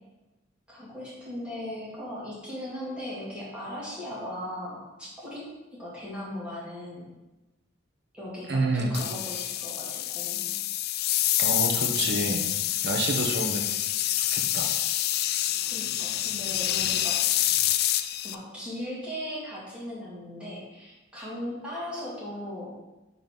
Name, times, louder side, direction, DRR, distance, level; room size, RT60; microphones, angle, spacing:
voice 1, 0.7-7.1 8.1-10.4 15.6-17.2 18.2-22.8, left 1 dB, 5° right, -8 dB, 2.2 m, -38 dB
voice 2, 8.5-9.1 11.4-12.4 12.8-13.7 14.2-14.8, right 2 dB, 55° right, 3 dB, 0.9 m, -28 dB
sound 1, 8.9-18.3, left 13 dB, 50° left, 0.3 m, -27 dB
5.3 x 3.9 x 5.9 m, 1.1 s
head